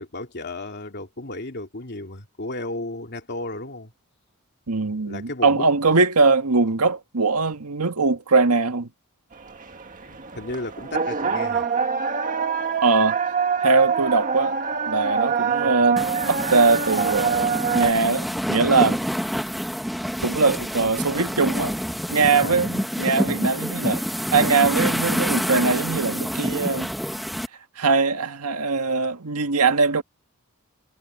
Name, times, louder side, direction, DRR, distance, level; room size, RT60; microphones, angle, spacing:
voice 1, 0.0-3.9 5.0-5.7 10.1-11.6 22.3-22.7, left 2 dB, 50° left, 2.8 m, -34 dB
voice 2, 4.7-8.9 12.8-13.2 13.6-14.6 14.8-19.0 20.2-21.8 22.1-24.0 24.3-26.9 27.8-30.0, right 4 dB, 85° right, 1.6 m, -21 dB
sound 1, 9.3-17.9, right 6 dB, 40° right, 1.8 m, -25 dB
sound 2, 16.0-27.5, equal, ahead, 1.1 m, -27 dB
head